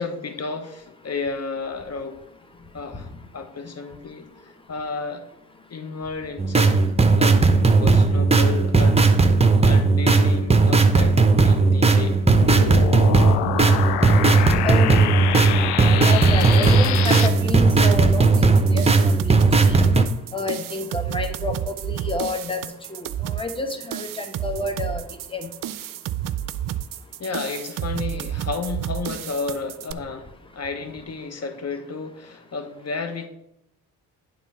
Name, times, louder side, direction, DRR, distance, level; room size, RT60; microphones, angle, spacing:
voice 1, 0.0-2.2 2.7-5.2 5.7-7.5 7.8-9.0 9.6-12.2 27.2-33.3, left 4 dB, 35° left, 8 dB, 1.3 m, -32 dB
sound 1, 6.4-20.0, right 3 dB, 15° right, 0.9 m, -17 dB
sound 2, 12.3-17.3, left 11 dB, 75° left, 0.7 m, -26 dB
voice 2, 14.6-15.2 15.6-19.4 19.6-19.8 20.3-25.0 25.3-25.5, left 2 dB, 10° left, 6 dB, 1.1 m, -30 dB
sound 3, 16.2-29.9, right 12 dB, 50° right, 0.5 m, -31 dB
8.9 x 3.8 x 5.8 m, 0.79 s
hypercardioid pair, 50°, 42 cm